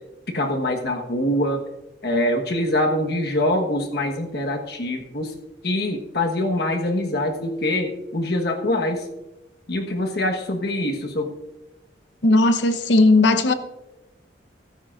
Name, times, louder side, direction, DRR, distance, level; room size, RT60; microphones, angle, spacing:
voice 1, 0.3-1.6 2.0-5.3 5.6-9.1 9.7-11.3, left 1 dB, 60° left, 1.3 m, -24 dB
voice 2, 12.2-13.5, left 2 dB, 75° left, 0.9 m, -16 dB
15.0 x 13.0 x 2.5 m
head